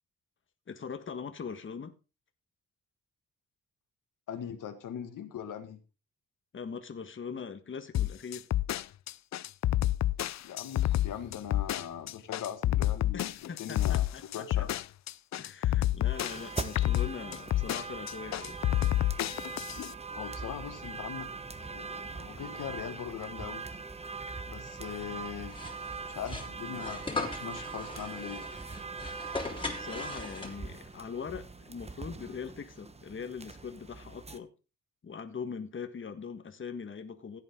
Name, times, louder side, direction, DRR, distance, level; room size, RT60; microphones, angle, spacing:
voice 1, 0.7-1.9 6.5-8.5 13.1-14.7 15.4-18.6 29.5-34.5 35.0-37.4, left 6 dB, 40° left, 8 dB, 1.6 m, -41 dB
voice 2, 4.3-5.8 10.4-13.3 13.6-14.0 14.3-14.7 20.2-21.3 21.6-23.7 24.5-25.5 26.1-28.4, left 9 dB, 85° left, 8 dB, 1.9 m, -40 dB
sound 1, 7.9-19.9, left 14 dB, 60° left, 0.5 m, -29 dB
sound 2, 16.0-34.4, right 4 dB, 20° right, 1.2 m, -41 dB
sound 3, 25.5-30.8, left 3 dB, 15° left, 3.3 m, -39 dB
15.5 x 8.6 x 3.8 m, 0.31 s
cardioid pair, 105°, 31 cm